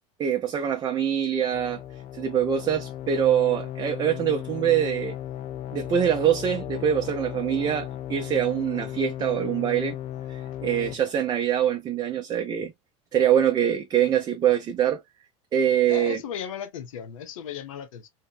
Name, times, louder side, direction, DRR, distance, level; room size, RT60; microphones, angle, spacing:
voice 1, 0.2-1.8 2.1-5.1 5.7-9.9 10.3-12.7 13.1-15.0 15.5-16.2, right 9 dB, 25° right, 0.4 m, -24 dB
sound 1, 1.5-11.0, left 11 dB, 40° left, 0.4 m, -36 dB
voice 2, 15.9-18.1, left 8 dB, 85° left, 0.6 m, -36 dB
2.7 x 2.0 x 2.3 m
supercardioid pair, 110°, 17 cm